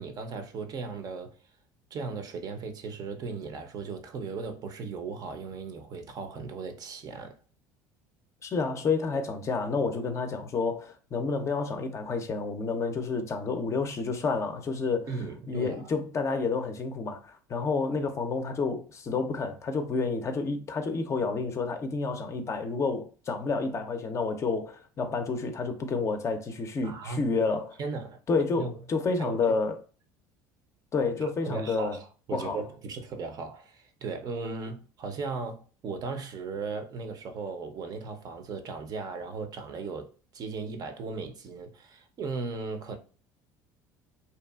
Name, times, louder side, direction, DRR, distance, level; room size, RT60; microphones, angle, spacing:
voice 1, 0.0-1.4 1.9-7.4 15.1-15.9 26.8-27.3 27.8-28.2 28.6-28.7 29.2-29.6 31.2-43.0, right 4 dB, 45° right, 0.5 m, -37 dB
voice 2, 8.4-15.2 15.5-27.8 28.3-29.8 30.9-32.0 32.3-32.6, left 4 dB, 35° left, 0.5 m, -29 dB
2.7 x 2.3 x 2.3 m
supercardioid pair, 85°, 9 cm